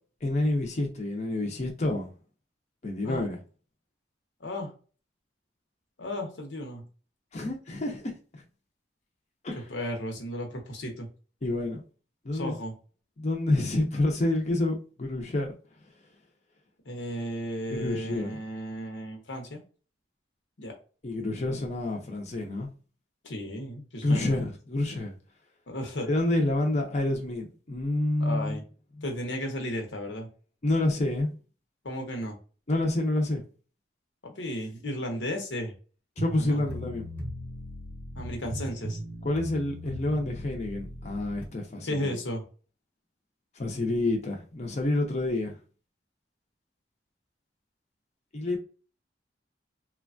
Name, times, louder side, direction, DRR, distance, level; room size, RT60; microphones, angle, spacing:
voice 1, 0.2-2.1 2.8-3.4 7.3-8.4 9.4-9.6 11.4-11.8 12.2-12.5 13.2-15.5 17.7-18.4 21.0-22.7 24.0-25.1 26.1-28.6 30.6-31.3 32.7-33.4 36.2-37.1 39.2-42.2 43.6-45.5 48.3-48.6, left 2 dB, 40° left, 0.6 m, -28 dB
voice 2, 4.4-4.7 6.0-6.9 9.5-11.1 12.3-12.7 16.9-19.6 20.6-20.7 23.2-24.4 25.7-26.1 28.2-28.6 29.0-30.3 31.8-32.4 34.2-35.7 36.4-36.6 38.2-39.0 41.8-42.4, equal, 85° left, 0.9 m, -34 dB
sound 1, 36.2-41.5, equal, 10° left, 0.8 m, -38 dB
3.1 x 2.2 x 2.4 m
head